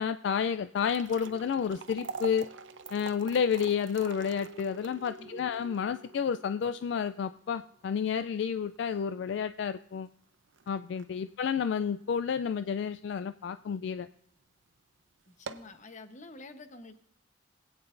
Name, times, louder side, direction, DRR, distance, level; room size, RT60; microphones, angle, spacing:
voice 1, 0.0-2.5 2.9-10.1 10.7-14.1, left 7 dB, 65° left, 12 dB, 0.3 m, -30 dB
sound 1, 0.7-13.0 13.4-13.5 14.2-14.4 14.7-14.8 15.3-15.8, right 5 dB, 75° right, 0.6 m, -47 dB
sound 2, 1.2-7.7, right 3 dB, 15° right, 0.7 m, -51 dB
voice 2, 15.3-17.0, left 2 dB, 40° left, 8 dB, 1.0 m, -48 dB
20.5 x 8.8 x 2.6 m, 0.72 s
head